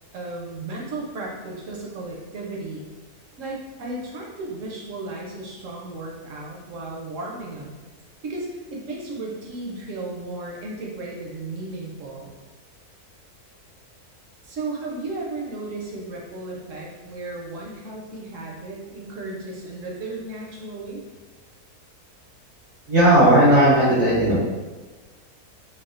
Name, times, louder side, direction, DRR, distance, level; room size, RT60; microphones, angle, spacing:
voice 1, 0.1-2.9 3.4-7.7 8.2-12.3 14.4-21.0, right 2 dB, 65° right, -2 dB, 0.8 m, -34 dB
voice 2, 22.9-24.4, right 1 dB, 85° right, -11 dB, 1.4 m, -15 dB
3.4 x 2.2 x 2.4 m, 1.3 s
omnidirectional pair, 1.6 m